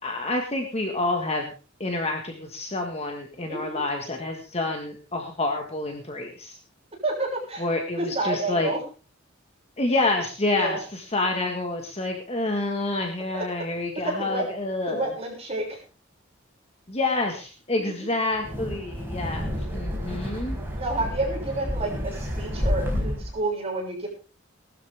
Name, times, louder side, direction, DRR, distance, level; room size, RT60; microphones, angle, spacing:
voice 1, 0.0-1.5 1.8-6.6 7.6-8.7 9.8-15.1 16.9-20.6, left 2 dB, 30° left, 3 dB, 1.7 m, -28 dB
voice 2, 3.5-3.8 7.0-7.6 8.0-8.8 10.6-10.8 13.3-13.4 14.0-14.4 14.9-15.8 17.7-18.1 20.8-24.1, right 2 dB, 30° right, -1 dB, 6.7 m, -29 dB
Wind, 18.3-23.4, equal, 10° right, 5.0 m, -30 dB
19.0 x 12.5 x 3.6 m, 0.36 s
head